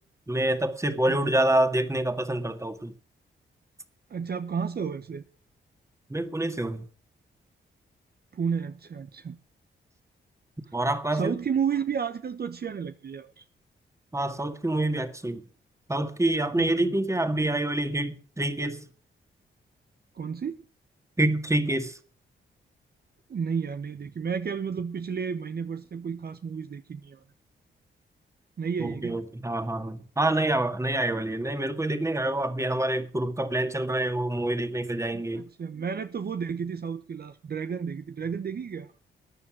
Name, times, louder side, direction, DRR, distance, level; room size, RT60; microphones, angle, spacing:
voice 1, 0.3-2.9 6.1-6.9 10.7-11.4 14.1-15.4 15.9-18.9 21.2-22.0 28.8-35.4, right 1 dB, 15° right, 1.9 m, -27 dB
voice 2, 4.1-5.2 8.3-9.4 11.1-13.4 16.5-16.9 20.1-20.6 23.3-27.2 28.6-29.2 35.1-38.9, right 6 dB, 50° right, 0.9 m, -32 dB
14.0 x 9.6 x 6.1 m
cardioid pair, 65°, 20 cm